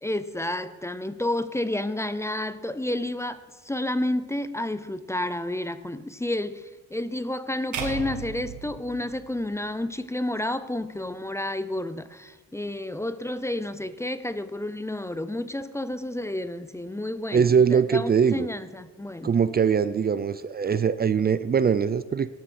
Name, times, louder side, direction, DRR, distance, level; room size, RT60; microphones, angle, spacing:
voice 1, 0.0-19.3, left 1 dB, 10° left, 0.6 m, -30 dB
sound 1, 7.7-10.0, right 7 dB, 75° right, 2.1 m, -36 dB
voice 2, 17.3-18.5 19.2-22.3, right 6 dB, 30° right, 0.5 m, -22 dB
18.5 x 12.0 x 4.4 m
cardioid pair, 90°, 30 cm